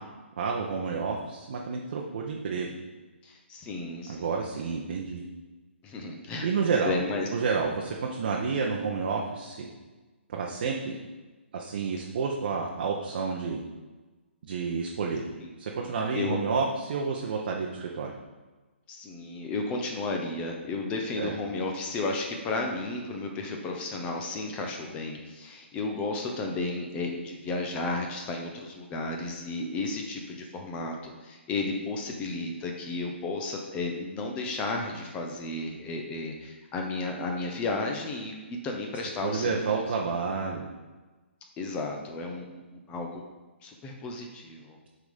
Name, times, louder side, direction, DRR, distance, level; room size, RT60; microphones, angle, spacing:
voice 1, 0.4-2.7 4.1-5.2 6.4-7.0 7.3-9.7 10.3-11.0 11.5-13.6 14.4-15.3 15.6-18.1 21.2-21.3 39.2-40.6, right 5 dB, 55° right, -1 dB, 0.9 m, -30 dB
voice 2, 3.2-4.2 5.8-6.5 6.8-7.3 15.4-15.5 15.8-16.4 18.9-39.8 41.6-43.2 43.6-44.9, left 3 dB, 20° left, 2 dB, 0.8 m, -33 dB
8.5 x 3.9 x 5.1 m, 1.2 s
hypercardioid pair, 150°, 7 cm